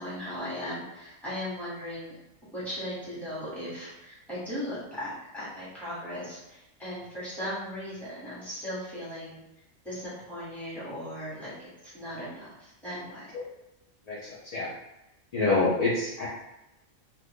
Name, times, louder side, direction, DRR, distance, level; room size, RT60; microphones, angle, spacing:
voice 1, 0.0-2.2 2.5-9.4 9.8-13.3, equal, ahead, -10 dB, 1.3 m, -37 dB
voice 2, 14.1-14.7 15.3-16.3, left 3 dB, 55° left, -7 dB, 0.4 m, -27 dB
2.6 x 2.4 x 3.4 m, 0.93 s
omnidirectional pair, 1.4 m